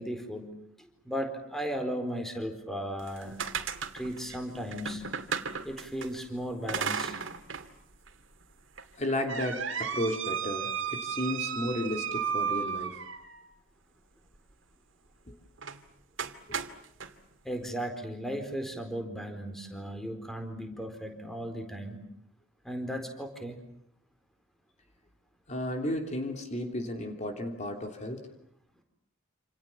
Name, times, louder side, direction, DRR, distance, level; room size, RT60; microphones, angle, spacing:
voice 1, 0.0-3.4 3.9-5.1 5.6-7.2 17.4-22.0 22.6-23.6, equal, ahead, 5 dB, 4.2 m, -36 dB
sound 1, 3.0-6.1 6.7-7.7 8.1-8.2 8.8-13.4 15.6-15.8 16.2-17.1, right 7 dB, 65° right, 2.5 m, -34 dB
voice 2, 9.0-13.0 15.3-15.4 25.5-28.2, left 1 dB, 35° left, 4 dB, 3.4 m, -33 dB
28.5 x 28.5 x 7.3 m, 0.72 s
head